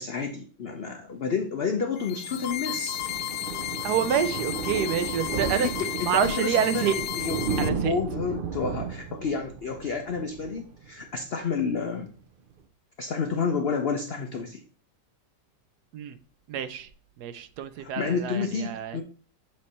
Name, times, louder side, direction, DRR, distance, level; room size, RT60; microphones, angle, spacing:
voice 1, 0.0-3.0 5.5-12.1 13.0-14.6 17.8-19.0, left 5 dB, 85° left, 0.5 m, -30 dB
sound 1, 1.9-7.7, left 13 dB, 70° left, 1.1 m, -33 dB
Thunder, 2.0-11.4 11.7-11.9 12.2-12.3 12.5-12.6, right 6 dB, 90° right, 0.4 m, -34 dB
voice 2, 3.8-5.7 6.0-7.0 7.6-7.9 15.9-16.2 16.5-16.9 17.2-19.0, right 9 dB, 70° right, 1.1 m, -27 dB
7.5 x 3.3 x 4.1 m
omnidirectional pair, 1.9 m